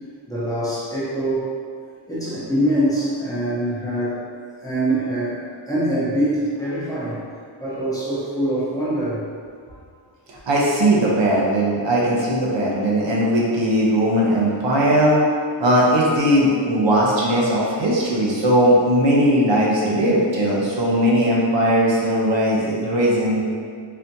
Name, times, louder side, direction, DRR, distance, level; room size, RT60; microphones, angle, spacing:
voice 1, 0.3-1.5 2.1-4.3 4.6-7.3 7.6-9.2 9.7-9.8 20.9-21.0 23.1-23.4, right 1 dB, 10° left, -10 dB, 0.7 m, -24 dB
voice 2, 10.3-15.2 15.6-23.4, equal, 70° right, -5 dB, 0.9 m, -18 dB
4.0 x 2.8 x 2.6 m, 2.1 s
wide cardioid pair, 160°, 46 cm